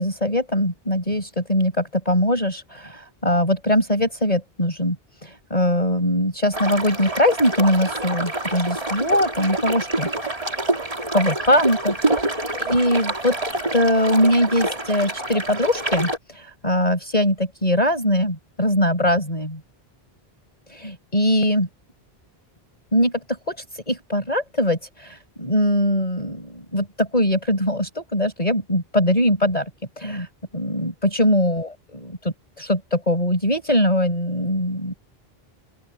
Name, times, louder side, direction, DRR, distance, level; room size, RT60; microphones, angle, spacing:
voice 1, 0.0-5.0 5.2-10.1 11.1-13.4 13.7-19.6 20.7-21.7 22.9-23.1 23.5-29.7 30.0-30.3 30.5-34.9, left 1 dB, 35° left, 5.5 m, -21 dB
sound 1, 6.5-16.2, right 2 dB, 35° right, 2.8 m, -27 dB
open air
omnidirectional pair, 1.1 m